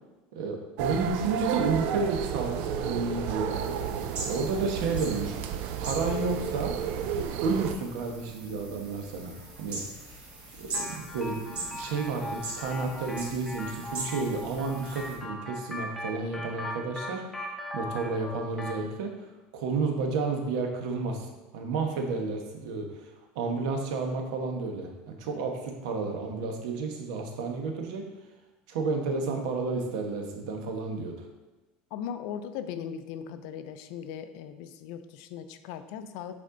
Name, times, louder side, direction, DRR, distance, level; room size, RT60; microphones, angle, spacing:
voice 1, 0.3-3.8 4.2-5.4 5.8-6.8 7.4-9.8 10.6-17.2 17.7-19.1 19.5-21.3 21.5-23.1 23.3-28.1 28.7-31.3, right 4 dB, 85° right, 3 dB, 1.2 m, -31 dB
sound 1, 0.8-7.8, right 8 dB, 55° right, 0.5 m, -32 dB
sound 2, 3.5-15.2, right 2 dB, 35° right, 1.8 m, -41 dB
sound 3, 10.7-18.9, left 1 dB, 5° left, 0.5 m, -39 dB
voice 2, 31.9-36.3, left 8 dB, 65° left, 10 dB, 0.5 m, -38 dB
8.6 x 4.3 x 3.8 m, 1.1 s
cardioid pair, 165°, 4 cm